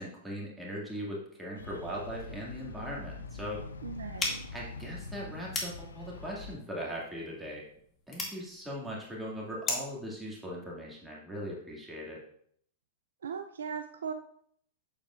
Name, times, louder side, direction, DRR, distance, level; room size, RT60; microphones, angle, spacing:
voice 1, 0.0-3.6 4.5-7.6 8.1-12.2, equal, 10° right, -3 dB, 2.0 m, -39 dB
sound 1, 1.6-6.6, left 4 dB, 85° left, 0.5 m, -44 dB
voice 2, 3.8-4.4 13.2-14.1, right 6 dB, 75° right, 7 dB, 0.4 m, -38 dB
sound 2, 4.2-10.0, left 2 dB, 25° left, 2.0 m, -39 dB
7.5 x 7.2 x 2.4 m, 0.66 s
hypercardioid pair, 105°, 0 cm